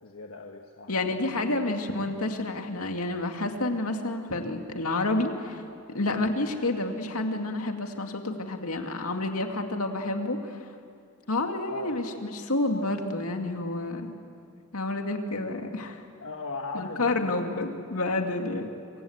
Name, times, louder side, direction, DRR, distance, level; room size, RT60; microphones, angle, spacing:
voice 1, 0.0-0.9 1.2-1.3 11.7-12.0 13.9-14.0 16.2-17.5, left 3 dB, 65° left, 2 dB, 1.5 m, -38 dB
voice 2, 0.9-5.6 5.9-10.6 11.3-14.2 14.7-16.0 16.7-18.7, left 2 dB, 85° left, 4 dB, 2.3 m, -29 dB
26.5 x 25.0 x 8.0 m, 2.4 s
head